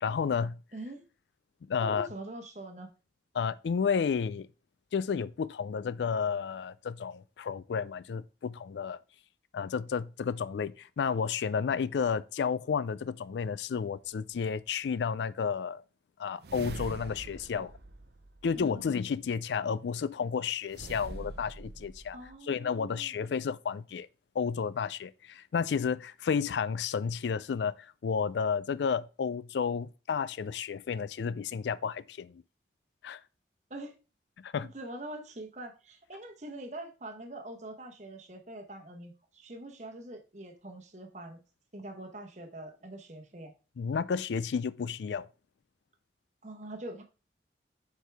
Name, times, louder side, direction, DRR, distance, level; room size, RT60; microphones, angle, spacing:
voice 1, 0.0-0.6 1.7-2.1 3.3-4.5 4.9-9.0 9.5-15.8 16.2-17.7 18.4-22.2 22.5-24.1 24.4-32.4 33.0-33.2 34.4-34.7 43.8-45.3, left 6 dB, 85° left, 0.4 m, -31 dB
voice 2, 0.7-1.0 1.8-2.9 17.5-17.6 18.5-18.9 22.1-23.1 33.7-33.9 34.7-41.4 41.7-43.5 46.4-47.0, right 1 dB, 40° right, 1.1 m, -44 dB
sound 1, 14.1-14.2 16.4-18.8 20.7-22.3, right 2 dB, 65° right, 0.6 m, -44 dB
8.0 x 4.7 x 3.4 m
head